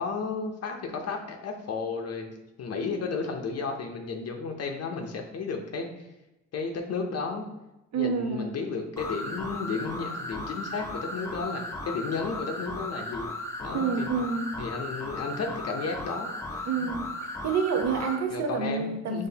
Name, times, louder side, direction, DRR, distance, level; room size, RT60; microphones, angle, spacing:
voice 1, 0.0-2.3 2.6-5.9 6.5-7.5 8.0-14.1 14.6-16.9 18.3-19.3, left 4 dB, 55° left, 3 dB, 0.7 m, -33 dB
voice 2, 7.9-8.5 13.7-14.5 16.7-17.0 17.4-19.3, right 5 dB, 60° right, 4 dB, 0.8 m, -28 dB
sound 1, 9.0-18.2, left 1 dB, 10° left, 0.7 m, -36 dB
5.8 x 3.2 x 2.8 m, 0.96 s
cardioid pair, 90°, 30 cm